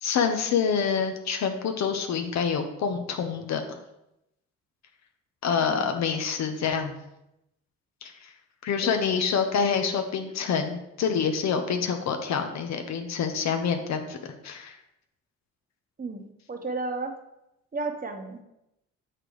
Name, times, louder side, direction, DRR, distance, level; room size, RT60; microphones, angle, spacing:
voice 1, 0.0-3.6 5.4-6.9 8.0-8.3 8.6-14.2 14.4-14.8, left 6 dB, 65° left, 6 dB, 0.8 m, -27 dB
voice 2, 16.5-17.1 17.7-18.4, right 3 dB, 30° right, 5 dB, 1.0 m, -32 dB
6.8 x 5.8 x 3.2 m, 0.86 s
cardioid pair, 90°, 30 cm